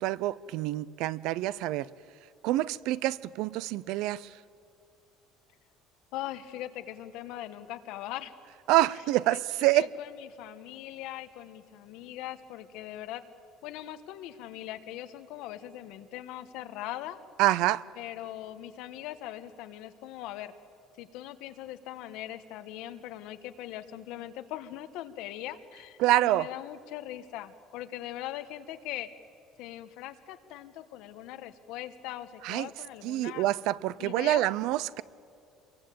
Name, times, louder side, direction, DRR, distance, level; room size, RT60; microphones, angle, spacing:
voice 1, 0.0-1.9 2.4-4.3 8.7-9.9 17.4-17.8 26.0-26.5 32.4-32.7 33.0-35.0, right 15 dB, 60° right, 0.6 m, -26 dB
voice 2, 6.1-8.4 9.3-9.4 9.7-13.2 13.6-17.2 18.0-20.5 21.0-29.1 29.6-33.4 34.0-34.4, left 13 dB, 65° left, 1.3 m, -40 dB
27.0 x 23.0 x 8.6 m
cardioid pair, 180°, 0 cm